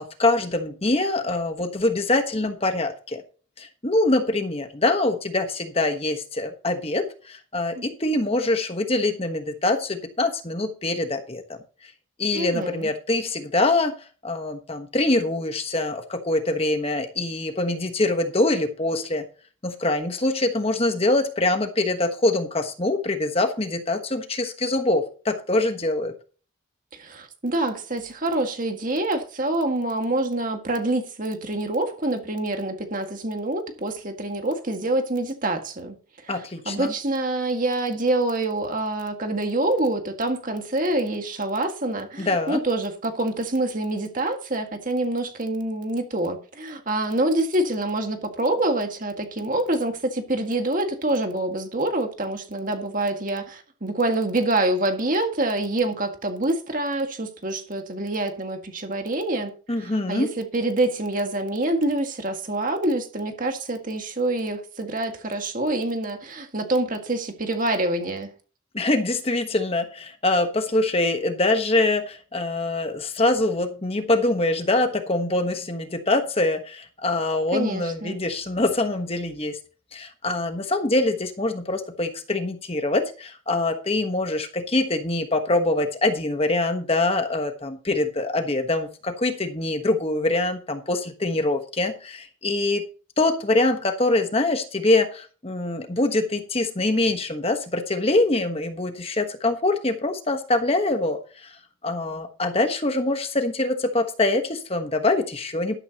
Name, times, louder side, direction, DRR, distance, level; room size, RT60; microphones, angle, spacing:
voice 1, 0.0-3.2 3.6-11.4 12.2-13.9 14.2-19.2 19.6-26.1 36.3-36.9 42.2-42.6 59.7-60.3 68.7-79.6 79.9-92.8 93.2-101.6 101.8-105.7, left 2 dB, 30° left, 1.2 m, -24 dB
voice 2, 12.3-12.9 26.9-36.0 36.2-68.3 77.5-78.2, right 2 dB, 40° right, 1.9 m, -26 dB
12.0 x 12.0 x 2.9 m
head